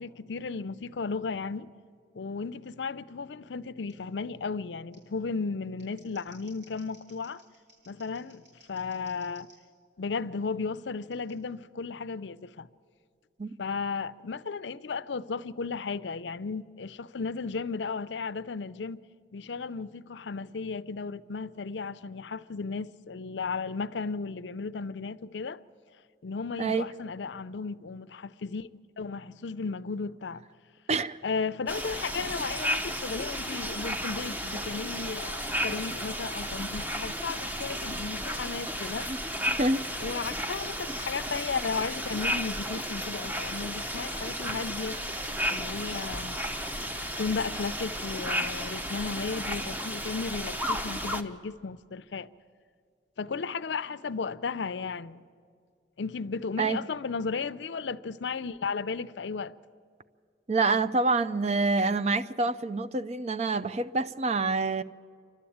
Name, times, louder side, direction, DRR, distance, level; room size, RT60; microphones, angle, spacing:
voice 1, 0.0-1.7 2.1-7.4 7.9-9.5 10.0-12.7 13.6-19.0 19.3-25.6 26.2-28.7 29.0-30.4 31.2-39.1 40.0-45.0 45.5-46.4 47.2-52.3 53.2-55.2 56.0-59.5, left 4 dB, 80° left, 0.6 m, -34 dB
Scissors, 3.9-4.0 4.9-5.0 5.6-9.6 11.1-11.3, right 1 dB, 75° right, 7.8 m, -59 dB
voice 2, 30.9-31.2 39.1-39.2 39.6-39.8 56.6-56.8 60.5-64.8, right 3 dB, 40° right, 0.5 m, -27 dB
sound 1, 31.7-51.2, equal, 10° right, 0.8 m, -33 dB
28.0 x 12.0 x 8.7 m
head